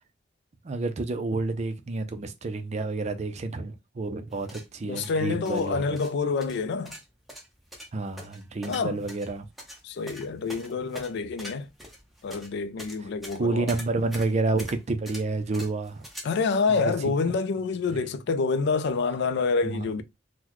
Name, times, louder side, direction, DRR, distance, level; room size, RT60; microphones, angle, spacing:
voice 1, 0.6-6.0 7.9-9.5 13.4-16.1 16.7-16.9 17.9-18.1 19.6-20.0, right 3 dB, 35° right, 0.4 m, -29 dB
sound 1, 4.3-16.2, equal, ahead, 0.7 m, -44 dB
voice 2, 4.8-6.9 8.7-9.0 9.8-11.7 12.2-13.7 16.2-20.0, left 4 dB, 60° left, 0.3 m, -27 dB
3.8 x 2.1 x 2.9 m
head